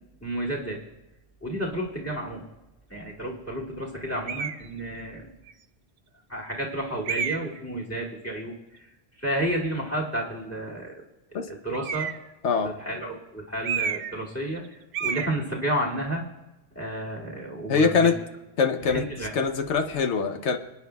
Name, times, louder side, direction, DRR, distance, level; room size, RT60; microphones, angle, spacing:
voice 1, 0.2-0.8 1.4-2.4 2.9-5.3 6.3-8.5 9.2-10.9 11.3-12.1 12.6-16.2 16.7-18.1 18.9-19.3, right 1 dB, 15° left, -4 dB, 2.5 m, -31 dB
sound 1, 4.3-4.7 5.5-5.6 7.0-7.6 11.7-12.3 13.6-14.2 14.5-14.7 14.9-15.3, right 7 dB, 70° right, 0.9 m, -30 dB
voice 2, 17.7-18.2 18.6-20.6, left 5 dB, 90° left, 6 dB, 1.1 m, -23 dB
27.0 x 9.6 x 2.3 m, 0.99 s
omnidirectional pair, 1.1 m